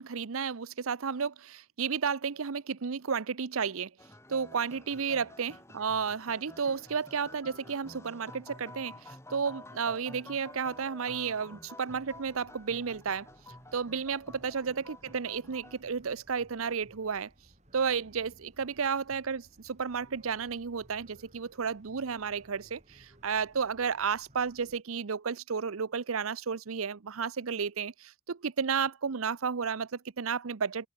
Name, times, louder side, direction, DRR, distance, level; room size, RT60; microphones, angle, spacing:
voice 1, 0.0-3.9 4.3-13.3 13.7-17.3 17.7-30.9, right 6 dB, 80° right, 0.7 m, -32 dB
sound 1, 4.0-15.8, left 1 dB, 15° left, 7.9 m, -51 dB
sound 2, 11.9-24.8, equal, 30° right, 7.7 m, -61 dB
head